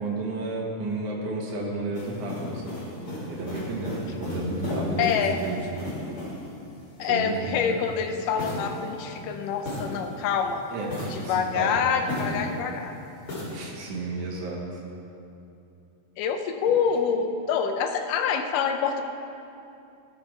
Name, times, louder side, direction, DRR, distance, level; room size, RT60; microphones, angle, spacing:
voice 1, 0.0-2.8 3.3-5.9 7.1-7.3 7.6-7.8 10.7-11.8 12.1-12.4 13.5-14.6 16.7-16.8, right 2 dB, 70° right, -3 dB, 2.8 m, -32 dB
sound 1, 1.9-6.6 8.4-10.3 10.8-12.6 13.3-13.6, left 2 dB, 45° left, 3.0 m, -35 dB
voice 2, 5.0-5.4 7.0-10.6 11.1-12.9 16.2-19.0, left 6 dB, 85° left, 5 dB, 2.3 m, -26 dB
12.5 x 6.6 x 4.8 m, 2.7 s
omnidirectional pair, 3.8 m